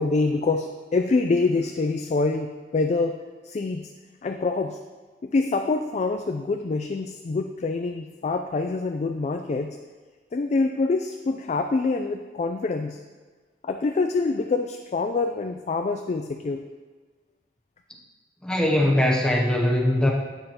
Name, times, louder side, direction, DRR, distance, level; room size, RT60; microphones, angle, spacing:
voice 1, 0.0-3.2 3.4-3.9 4.2-4.8 5.2-9.8 10.3-13.0 13.6-16.7, left 3 dB, 40° left, 5 dB, 0.3 m, -25 dB
voice 2, 18.4-20.1, left 1 dB, 5° left, -2 dB, 0.6 m, -21 dB
9.2 x 6.6 x 2.9 m, 1.4 s
head